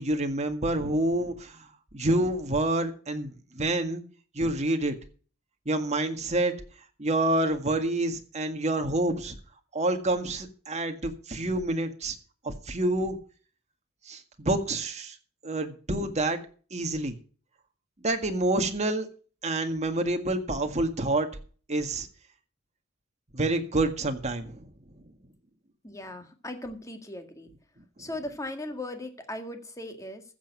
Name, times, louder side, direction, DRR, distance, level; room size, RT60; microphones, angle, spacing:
voice 1, 0.0-1.7 1.9-4.0 4.3-5.0 5.7-6.5 7.0-9.3 9.7-12.2 12.4-13.2 14.1-15.2 15.4-16.4 16.7-17.1 18.0-19.1 19.4-21.3 21.7-22.1 23.3-24.6 28.0-28.1, right 2 dB, 35° right, 5 dB, 1.9 m, -28 dB
voice 2, 25.8-27.5 28.0-30.2, left 1 dB, 15° left, 5 dB, 1.9 m, -38 dB
14.5 x 7.4 x 5.9 m, 0.40 s
head